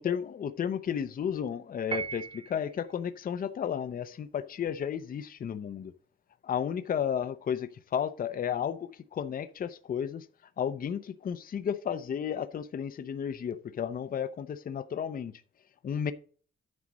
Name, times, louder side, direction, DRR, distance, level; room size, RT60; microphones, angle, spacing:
voice 1, 0.0-5.9 6.4-10.3 10.6-15.3 15.8-16.1, left 8 dB, 45° left, 0.6 m, -33 dB
Piano, 1.9-2.8, right 5 dB, 25° right, 0.6 m, -37 dB
9.6 x 6.3 x 4.1 m
cardioid pair, 125°, 21 cm